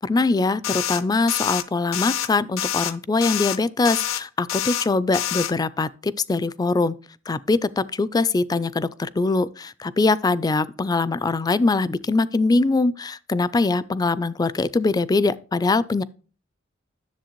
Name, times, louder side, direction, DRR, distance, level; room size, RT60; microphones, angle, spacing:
voice 1, 0.0-6.9 7.3-16.0, left 3 dB, 20° left, 0.3 m, -22 dB
sound 1, 0.6-1.0 1.3-1.6 1.9-2.3 2.6-2.9 3.2-3.6 3.8-4.2 4.5-4.9 5.1-5.5, left 11 dB, 80° left, 0.6 m, -26 dB
10.5 x 7.2 x 3.0 m
head